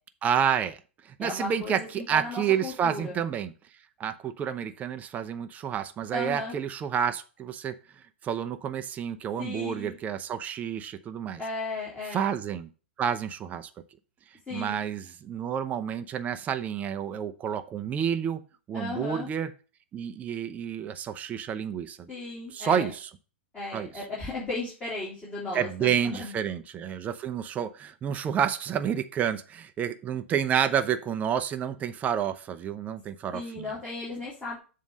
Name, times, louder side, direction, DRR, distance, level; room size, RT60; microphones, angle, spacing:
voice 1, 0.2-0.8 1.2-3.5 4.0-7.7 8.2-11.4 12.1-12.7 13.0-13.7 14.5-18.4 18.7-19.5 19.9-22.1 22.5-23.1 23.7-23.9 25.5-33.7, right 8 dB, 25° right, 9 dB, 0.6 m, -29 dB
voice 2, 1.2-3.2 6.1-6.6 9.4-10.0 11.4-12.3 14.5-14.8 18.7-19.3 22.1-22.9 23.5-26.3 33.3-34.6, left 2 dB, 15° left, -7 dB, 3.1 m, -35 dB
7.2 x 3.8 x 6.4 m, 0.36 s
hypercardioid pair, 110°, 7 cm